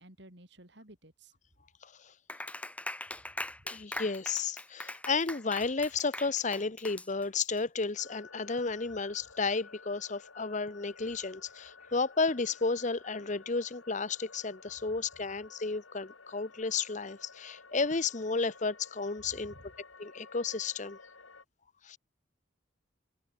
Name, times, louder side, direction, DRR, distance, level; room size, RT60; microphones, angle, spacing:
voice 1, 0.0-1.3 19.4-19.7, right 1 dB, 55° right, 5.6 m, -54 dB
Clapping, 2.3-7.6, left 1 dB, 5° left, 4.7 m, -41 dB
voice 2, 3.7-19.5 20.0-21.0 21.8-22.0, left 4 dB, 35° left, 0.8 m, -32 dB
sound 1, 8.0-21.4, left 4 dB, 85° left, 5.5 m, -54 dB
open air
head